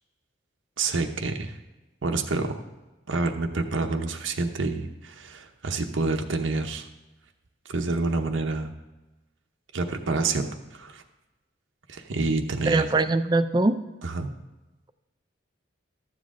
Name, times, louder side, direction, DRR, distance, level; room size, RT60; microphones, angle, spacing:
voice 1, 0.8-1.6 2.0-2.6 3.1-6.9 7.7-8.7 9.7-11.0 11.9-12.9 14.0-14.3, right 3 dB, 75° right, 4 dB, 0.8 m, -28 dB
voice 2, 12.7-13.8, right 2 dB, 20° right, 11 dB, 0.4 m, -22 dB
12.5 x 7.4 x 3.7 m, 1.1 s
head